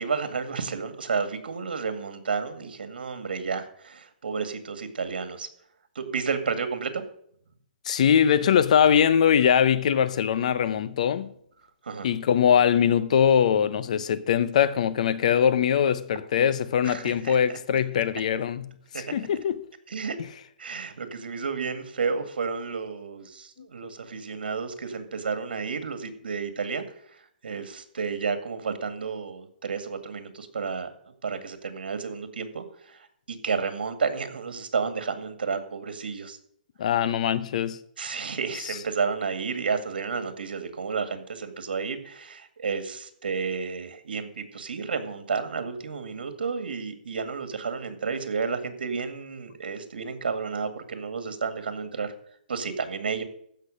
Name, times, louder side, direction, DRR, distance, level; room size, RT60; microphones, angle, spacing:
voice 1, 0.0-5.5 6.0-7.0 11.8-12.1 16.8-17.6 18.9-19.0 19.9-20.2 20.6-27.2 27.4-30.9 31.2-36.4 38.0-52.1 52.5-53.2, right 5 dB, 80° right, 2.1 m, -31 dB
voice 2, 7.9-11.3 12.0-18.7 19.1-19.6 36.8-37.8 38.6-38.8, left 8 dB, 45° left, 0.7 m, -22 dB
14.5 x 6.1 x 6.5 m
hypercardioid pair, 165°, 5 cm